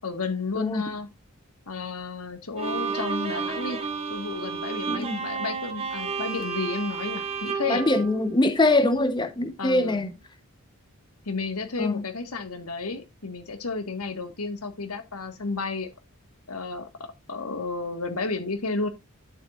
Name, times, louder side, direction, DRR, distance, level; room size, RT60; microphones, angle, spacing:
voice 1, 0.0-1.1 1.7-3.8 4.1-7.8 9.6-10.0 11.2-15.9 16.5-18.9, left 3 dB, 85° left, 1.6 m, -32 dB
Bowed string instrument, 2.6-8.8, right 5 dB, 30° right, 1.7 m, -32 dB
voice 2, 4.9-5.2 7.7-10.1 11.8-12.0, left 2 dB, 20° left, 0.8 m, -23 dB
11.0 x 7.3 x 2.4 m
head